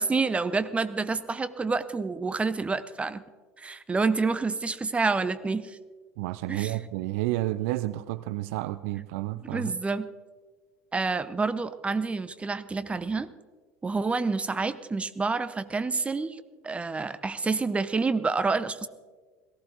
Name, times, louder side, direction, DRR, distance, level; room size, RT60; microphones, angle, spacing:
voice 1, 0.0-3.2 3.6-5.8 6.5-6.7 9.5-10.1 10.9-13.3 13.8-18.9, right 4 dB, 15° right, 13 dB, 0.7 m, -28 dB
voice 2, 6.2-9.7, right 16 dB, 60° right, 16 dB, 0.4 m, -30 dB
18.0 x 14.5 x 4.0 m, 1.4 s
figure-of-eight pair, 70°, 8 cm